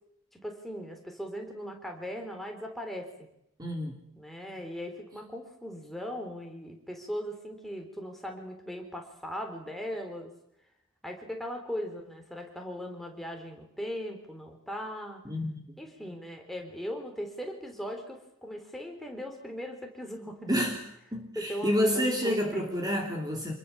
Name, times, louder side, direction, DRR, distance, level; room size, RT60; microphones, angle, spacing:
voice 1, 0.3-3.3 4.2-10.3 11.0-15.2 15.8-20.6 21.4-22.7, equal, ahead, 2 dB, 3.9 m, -39 dB
voice 2, 3.6-4.0 15.2-15.6 20.5-20.8 21.1-23.5, equal, 20° right, 1 dB, 3.0 m, -29 dB
27.0 x 21.5 x 7.1 m, 0.77 s
head